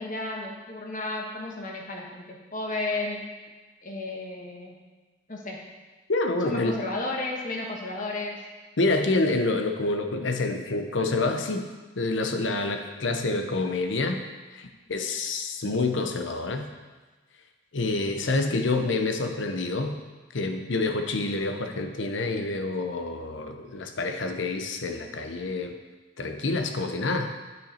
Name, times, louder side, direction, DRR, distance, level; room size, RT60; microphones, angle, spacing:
voice 1, 0.0-3.2 3.8-4.8 5.3-5.6 6.4-8.4, left 2 dB, 40° left, -1 dB, 1.3 m, -33 dB
voice 2, 6.1-6.8 8.8-11.7 12.0-14.2 14.5-16.7 17.7-20.0 20.3-25.8 26.2-27.3, left 3 dB, 65° left, 6 dB, 0.7 m, -27 dB
9.2 x 5.9 x 4.3 m, 1.3 s
head